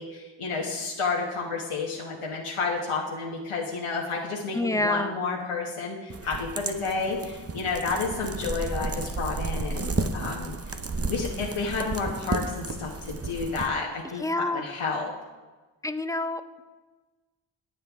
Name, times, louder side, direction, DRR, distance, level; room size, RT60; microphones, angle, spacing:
voice 1, 0.0-10.8 11.1-15.1, left 4 dB, 90° left, -2 dB, 1.3 m, -31 dB
voice 2, 4.5-5.1 14.2-14.6 15.8-16.4, left 2 dB, 5° left, 10 dB, 0.5 m, -27 dB
sound 1, 6.1-13.7, right 3 dB, 30° right, 0.8 m, -32 dB
19.0 x 7.7 x 3.6 m, 1.3 s
wide cardioid pair, 75°, 49 cm